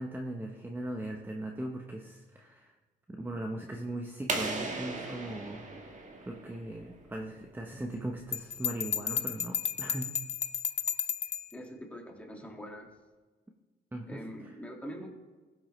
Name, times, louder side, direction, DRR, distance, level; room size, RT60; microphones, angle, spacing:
voice 1, 0.0-2.7 3.1-5.6 6.3-10.1 13.9-14.5, right 1 dB, 10° right, 2 dB, 0.9 m, -39 dB
sound 1, 4.3-6.9, right 3 dB, 40° right, 1.7 m, -37 dB
Bell, 8.3-11.5, left 8 dB, 35° left, 0.4 m, -33 dB
voice 2, 11.5-12.9 14.1-15.1, equal, 5° left, 0 dB, 2.0 m, -43 dB
15.5 x 7.5 x 3.1 m, 1.3 s
cardioid pair, 90°, 20 cm